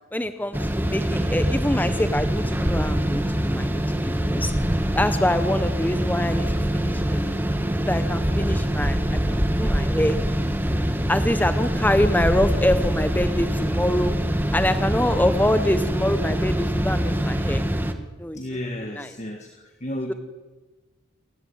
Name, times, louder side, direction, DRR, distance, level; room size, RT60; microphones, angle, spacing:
voice 1, 0.1-3.8 4.3-4.5 5.0-7.3 7.8-10.2 11.1-14.2 14.5-17.6 18.2-18.4 19.0-19.1 20.1-20.2, left 1 dB, 10° left, 10 dB, 0.9 m, -25 dB
sound 1, 0.5-17.9, equal, 10° right, 1.5 m, -24 dB
voice 2, 18.3-19.5 19.8-20.1, left 1 dB, 35° left, 4 dB, 2.0 m, -32 dB
28.5 x 15.5 x 9.6 m, 1.3 s
head